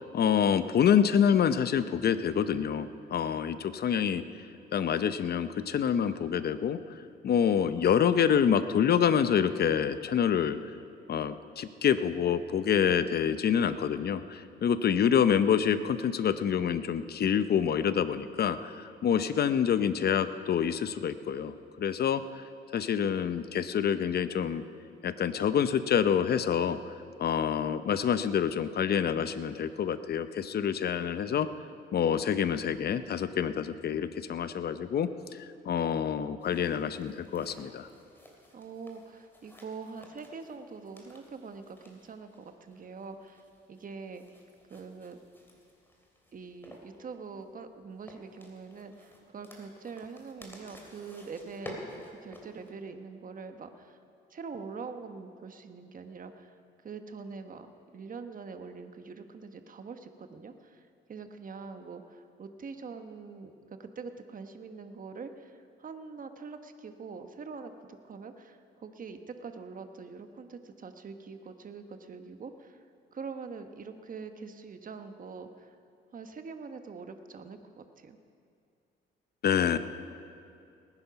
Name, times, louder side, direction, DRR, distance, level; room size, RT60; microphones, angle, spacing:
voice 1, 0.0-4.2 4.7-6.8 7.2-10.6 11.1-22.4 22.7-24.6 25.0-26.8 27.2-31.5 31.9-35.1 35.4-37.9 79.4-79.8, left 8 dB, 55° left, 12 dB, 0.7 m, -27 dB
sound 1, 36.4-52.7, equal, 10° left, 3.0 m, -52 dB
voice 2, 38.5-43.4 43.7-44.2 44.7-45.2 46.3-54.0 54.3-56.5 56.8-67.7 68.0-72.8 73.1-75.8 76.1-78.2, right 5 dB, 45° right, 8 dB, 1.2 m, -44 dB
19.5 x 9.9 x 5.9 m, 2.5 s
cardioid pair, 90°, 20 cm